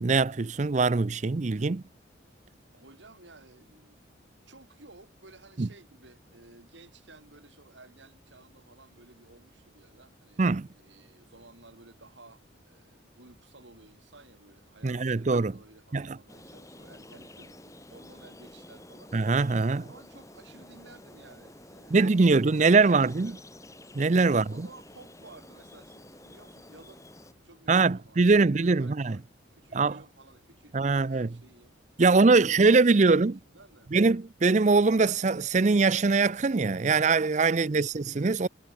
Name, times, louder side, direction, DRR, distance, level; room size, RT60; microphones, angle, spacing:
voice 1, 0.0-1.8 5.6-5.7 10.4-10.7 14.8-15.5 15.9-16.2 19.1-19.8 21.9-23.3 23.9-24.7 27.7-29.2 29.7-29.9 30.7-31.3 32.0-33.3 33.9-38.5, right 3 dB, 40° right, 0.5 m, -22 dB
voice 2, 2.7-4.0 4.5-19.1 19.8-23.5 24.3-27.1 27.4-29.2 29.5-31.8 32.0-33.9 37.5-37.9, right 2 dB, 75° right, 3.9 m, -55 dB
sound 1, 16.3-27.3, left 1 dB, 15° left, 3.6 m, -50 dB
head